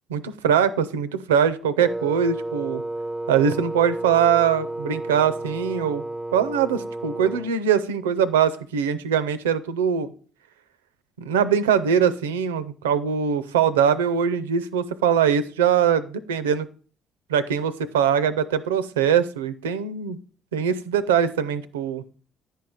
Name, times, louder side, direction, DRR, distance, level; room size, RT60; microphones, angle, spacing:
voice 1, 0.1-2.8 3.3-6.0 6.3-10.1 11.2-16.7 17.3-20.2 20.5-22.0, right 8 dB, 85° right, 14 dB, 0.4 m, -22 dB
Wind instrument woodwind instrument, 1.8-7.6, right 1 dB, 10° right, 0.5 m, -32 dB
10.5 x 4.6 x 4.9 m, 0.42 s
hypercardioid pair, 50°, 0 cm